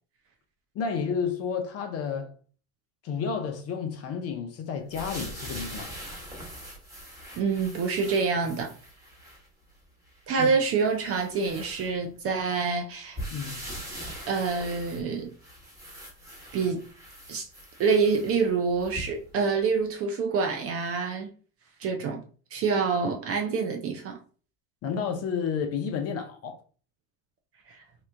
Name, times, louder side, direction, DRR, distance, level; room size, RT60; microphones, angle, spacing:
voice 1, 0.7-2.3 3.0-5.9 10.4-10.5 13.3-13.6 24.8-26.6, left 6 dB, 30° left, 0.5 m, -31 dB
sound 1, 4.9-9.5 10.1-10.2 10.7-12.3 13.2-19.3 19.9-20.0, equal, 5° right, 1.2 m, -42 dB
voice 2, 7.4-8.7 10.3-13.2 14.3-15.3 16.5-16.8 17.3-17.5 17.8-21.3 21.8-22.2 22.5-24.2 27.7-27.8, right 5 dB, 30° right, 0.4 m, -26 dB
3.0 x 2.3 x 3.3 m
supercardioid pair, 120°, 48 cm